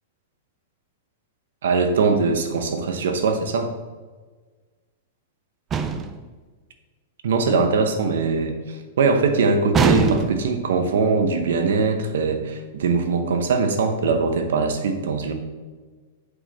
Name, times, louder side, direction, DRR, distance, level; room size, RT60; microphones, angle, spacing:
voice 1, 1.6-3.7 7.2-15.3, right 4 dB, 75° right, 6 dB, 0.9 m, -21 dB
sound 1, 5.7-6.3 9.7-10.6, right 5 dB, 15° right, 0.3 m, -22 dB
7.9 x 3.8 x 4.1 m, 1.4 s
supercardioid pair, 175°, 0 cm